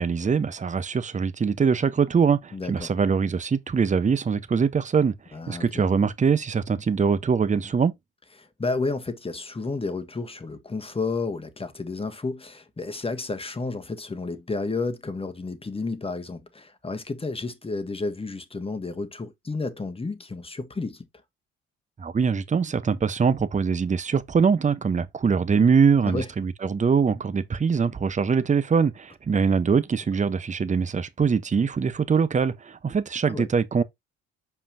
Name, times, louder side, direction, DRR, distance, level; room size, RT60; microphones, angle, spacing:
voice 1, 0.0-5.1 5.5-7.9 22.0-33.8, right 6 dB, 20° right, 0.9 m, -23 dB
voice 2, 2.5-2.9 5.3-5.9 8.4-21.1 26.0-26.3 33.3-33.5, left 3 dB, 15° left, 1.4 m, -31 dB
6.8 x 5.6 x 2.7 m
figure-of-eight pair, 50°, 35 cm